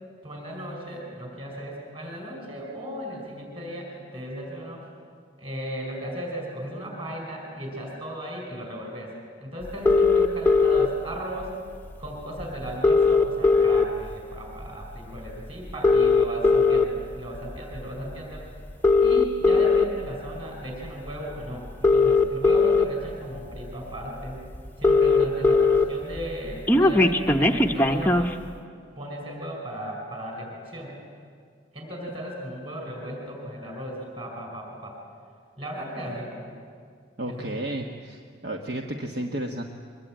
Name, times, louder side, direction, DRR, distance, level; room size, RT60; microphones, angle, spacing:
voice 1, 0.2-4.8 5.4-11.5 12.0-18.6 19.0-24.4 24.8-28.3 29.0-30.9 31.7-35.0 35.6-36.5 37.3-37.6, equal, 30° right, 1 dB, 5.3 m, -36 dB
sound 1, 9.9-10.9 12.0-12.1 12.4-12.5 12.7-14.1 14.6-14.8 15.7-16.8 17.6-17.8 18.7-19.9 21.1-21.2 21.7-22.8 23.5-23.6 23.9-24.0 24.3-24.4 24.5-25.8 26.2-28.3, left 3 dB, 10° left, 0.8 m, -19 dB
voice 2, 37.2-39.6, right 1 dB, 55° right, 2 dB, 1.3 m, -32 dB
23.5 x 21.0 x 9.0 m, 2.1 s
head